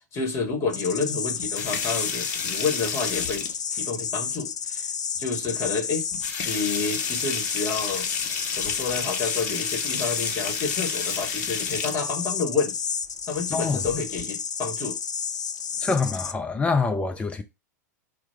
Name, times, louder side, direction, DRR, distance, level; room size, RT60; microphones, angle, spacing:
voice 1, 0.0-4.9 5.2-6.1 6.4-8.1 8.5-12.8 13.3-15.0, left 4 dB, 30° left, 1.3 m, -29 dB
sound 1, 0.7-16.3, left 6 dB, 70° left, 0.4 m, -31 dB
sound 2, 1.4-3.8 5.2-5.3 5.7-5.8 6.1-12.0 13.7-14.2, left 5 dB, 45° left, 0.8 m, -31 dB
voice 2, 15.8-17.4, left 4 dB, 10° left, 0.4 m, -25 dB
4.5 x 2.1 x 4.4 m
figure-of-eight pair, 95°, 10 cm